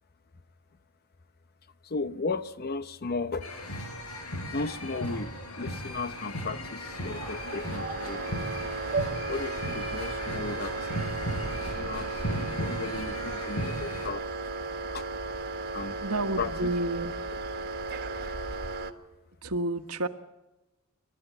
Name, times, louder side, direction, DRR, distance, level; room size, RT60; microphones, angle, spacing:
voice 1, 1.8-3.5 4.5-8.2 9.3-10.9 11.6-12.3 12.6-14.3 14.9-15.1 15.7-16.0 16.4-16.7, left 3 dB, 45° left, 12 dB, 0.8 m, -35 dB
sound 1, 3.4-14.1, equal, 90° left, 4.8 m, -36 dB
sound 2, 6.7-18.9, right 3 dB, 45° right, 1.8 m, -35 dB
voice 2, 16.0-17.1 19.4-20.1, right 2 dB, 85° right, 8 dB, 1.4 m, -30 dB
30.0 x 12.5 x 8.1 m, 1.1 s
head